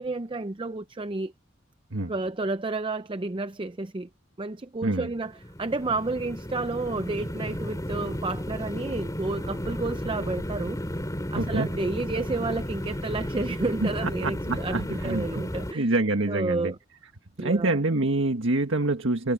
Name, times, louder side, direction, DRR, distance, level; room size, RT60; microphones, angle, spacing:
voice 1, 0.0-1.3 2.1-4.1 4.4-5.3 5.6-10.8 11.3-15.9 16.3-16.8 17.4-17.8, right 3 dB, 25° right, 0.6 m, -31 dB
sound 1, 5.2-15.7, equal, 20° left, 3.2 m, -33 dB
voice 2, 11.3-11.7 13.8-15.4 15.7-16.7 17.4-19.3, right 2 dB, 80° right, 1.6 m, -26 dB
head